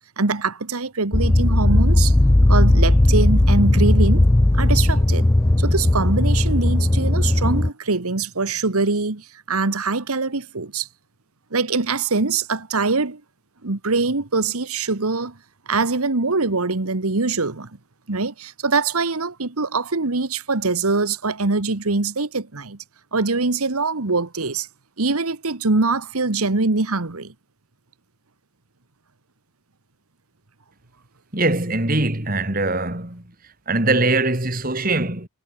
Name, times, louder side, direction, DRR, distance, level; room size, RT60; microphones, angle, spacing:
voice 1, 0.2-2.2 2.5-4.2 4.5-5.3 5.6-10.9 11.5-13.2 13.6-15.4 15.7-17.7 18.1-22.8 23.1-24.7 25.0-27.3, right 3 dB, 85° right, 1.5 m, -23 dB
sound 1, 1.1-7.7, left 1 dB, 15° left, 0.4 m, -16 dB
voice 2, 31.3-33.2 33.7-35.3, right 2 dB, 40° right, 3.2 m, -22 dB
head